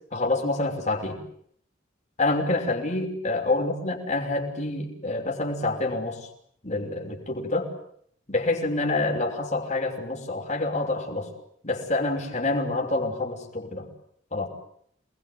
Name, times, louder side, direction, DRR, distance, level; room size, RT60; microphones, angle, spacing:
voice 1, 0.1-1.2 2.2-6.3 6.6-7.7 8.3-11.3 11.6-13.9 14.3-14.5, left 2 dB, 40° left, 2 dB, 6.1 m, -27 dB
28.5 x 21.0 x 9.5 m, 0.68 s
head